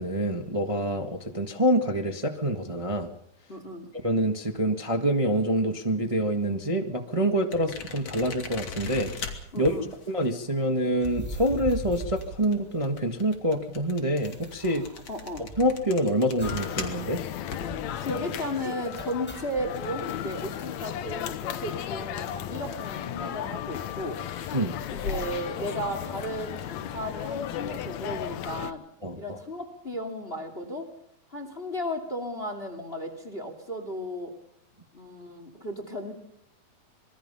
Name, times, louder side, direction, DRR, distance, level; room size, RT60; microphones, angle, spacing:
voice 1, 0.0-3.1 4.0-9.1 9.6-9.7 10.1-14.9 15.6-17.2 24.5-24.8 29.0-29.4, equal, 45° right, 4 dB, 0.4 m, -26 dB
voice 2, 3.5-3.9 9.5-9.9 14.6-15.5 18.0-24.2 24.9-28.8 29.2-30.9 31.3-34.3 34.9-36.1, equal, 20° left, 7 dB, 2.3 m, -35 dB
sound 1, 7.5-20.9 21.1-23.0 23.7-26.4, left 5 dB, 50° left, 3.5 m, -41 dB
sound 2, 10.9-13.2 13.5-13.6 13.8-15.9 16.4-16.8 17.1-17.2 17.6-18.1 19.0-19.7, right 2 dB, 5° left, 5.7 m, -40 dB
sound 3, 16.4-28.7, left 10 dB, 65° left, 2.0 m, -35 dB
26.5 x 22.0 x 5.7 m, 0.71 s
omnidirectional pair, 4.0 m